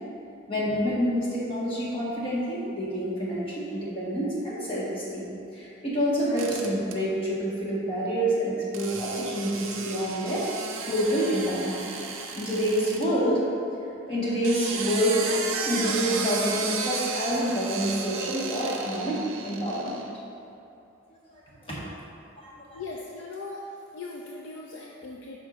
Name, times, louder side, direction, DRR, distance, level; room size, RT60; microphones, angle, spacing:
voice 1, 0.5-10.4 10.9-11.8 12.3-13.4 14.1-15.2 15.6-20.1 21.3-21.8 22.4-22.8, equal, 25° left, -7 dB, 1.4 m, -27 dB
sound 1, 6.4-7.0 8.7-13.1 14.2-20.1, right 5 dB, 75° right, 0.6 m, -34 dB
voice 2, 22.7-25.4, left 3 dB, 65° left, -2 dB, 0.4 m, -39 dB
7.8 x 5.6 x 2.5 m, 2.7 s
head